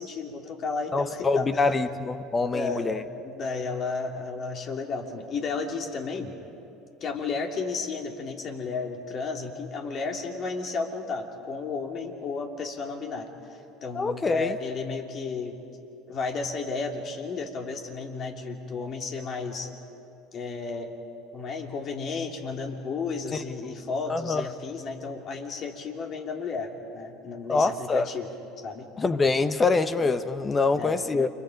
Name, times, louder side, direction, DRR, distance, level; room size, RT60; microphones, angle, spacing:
voice 1, 0.0-1.6 2.4-6.4 7.0-13.3 13.8-15.6 16.1-19.7 20.3-20.9 21.3-28.3 28.6-28.9 30.7-31.0, left 4 dB, 50° left, 2 dB, 3.1 m, -33 dB
voice 2, 0.9-3.0 13.9-14.6 24.1-24.4 27.5-28.1 29.0-31.3, left 3 dB, 25° left, 11 dB, 1.0 m, -25 dB
30.0 x 25.5 x 5.3 m, 2.7 s
hypercardioid pair, 80°, 0 cm